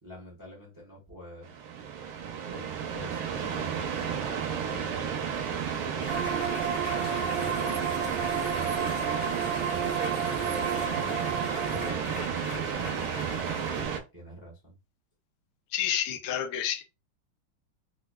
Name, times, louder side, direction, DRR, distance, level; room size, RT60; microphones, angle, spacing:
voice 1, 0.0-1.5 2.5-2.6 2.9-5.4 5.9-6.4 7.1-14.7, equal, 20° right, 0.6 m, -47 dB
sound 1, 1.4-14.0, right 7 dB, 90° right, 1.6 m, -32 dB
sound 2, 6.0-13.8, left 2 dB, 35° left, 1.2 m, -41 dB
sound 3, 6.1-11.9, right 8 dB, 70° right, 1.2 m, -32 dB
voice 2, 15.7-16.8, left 11 dB, 70° left, 1.0 m, -29 dB
4.4 x 2.4 x 2.2 m
omnidirectional pair, 2.3 m